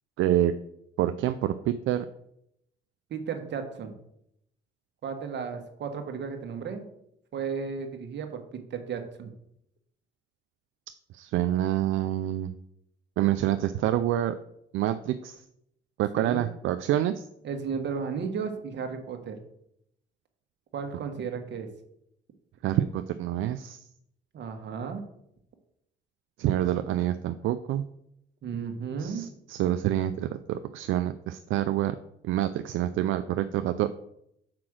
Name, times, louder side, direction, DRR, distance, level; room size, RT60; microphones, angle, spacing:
voice 1, 0.2-0.5 1.0-2.1 11.1-12.5 13.2-14.4 14.7-15.4 16.0-17.3 22.6-23.8 26.4-27.8 29.0-31.9 32.2-33.9, right 12 dB, 80° right, 10 dB, 0.4 m, -27 dB
voice 2, 3.1-3.9 5.0-6.8 7.3-9.3 16.2-16.4 17.4-19.4 20.7-21.7 24.3-25.0 28.4-29.2, right 6 dB, 60° right, 5 dB, 1.3 m, -34 dB
6.0 x 4.8 x 6.2 m, 0.76 s
cardioid pair, 90°, 20 cm